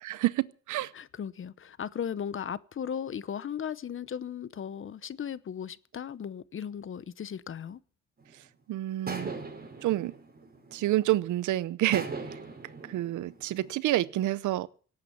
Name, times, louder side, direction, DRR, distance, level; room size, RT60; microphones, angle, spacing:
voice 1, 0.0-0.9 8.7-9.3 9.8-10.1 10.7-12.4 12.9-14.7, right 15 dB, 80° right, 0.7 m, -28 dB
voice 2, 0.9-7.8, left 8 dB, 45° left, 0.9 m, -36 dB
sound 1, 8.2-8.5 9.1-11.2 11.9-13.7, right 3 dB, 30° right, 5.3 m, -40 dB
17.5 x 8.6 x 7.2 m
cardioid pair, 90°, 30 cm